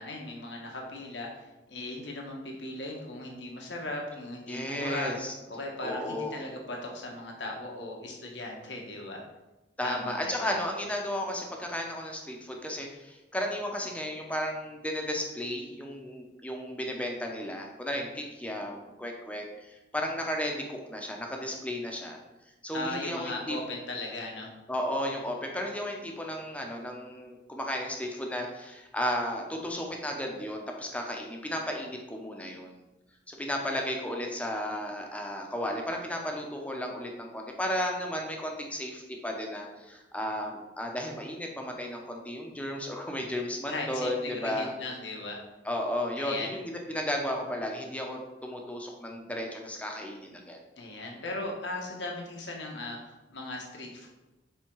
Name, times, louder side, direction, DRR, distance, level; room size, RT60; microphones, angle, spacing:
voice 1, 0.0-5.1 5.5-9.2 9.8-10.5 22.7-24.5 43.7-45.4 46.2-46.5 50.8-54.1, left 2 dB, 90° left, 0 dB, 1.5 m, -38 dB
voice 2, 4.5-5.3 5.8-6.4 9.8-22.2 22.6-23.6 24.7-32.8 33.3-44.7 45.6-50.6, left 1 dB, 10° left, 1 dB, 0.9 m, -34 dB
8.4 x 3.7 x 4.7 m, 1.0 s
head